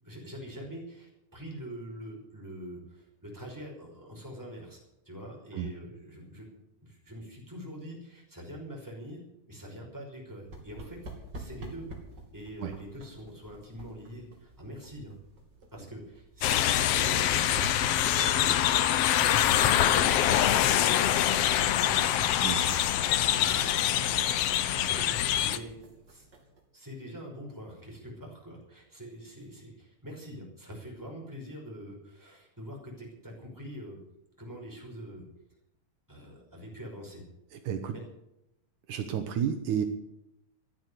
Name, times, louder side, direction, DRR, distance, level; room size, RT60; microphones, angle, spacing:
voice 1, 0.0-4.8 5.1-9.2 9.5-11.9 12.3-15.2 15.7-17.5 18.1-22.3 22.8-22.9 23.3-26.3 26.7-34.0 34.4-35.3 36.1-37.2 37.8-38.0, equal, 5° right, -1 dB, 5.2 m, -44 dB
sound 1, 10.4-26.6, right 2 dB, 35° right, 3.2 m, -47 dB
sound 2, 16.4-25.6, left 11 dB, 75° left, 1.4 m, -25 dB
voice 2, 22.4-22.8 37.5-37.9 38.9-39.8, right 8 dB, 75° right, 6 dB, 2.5 m, -31 dB
14.5 x 11.0 x 8.2 m, 0.84 s
omnidirectional pair, 3.6 m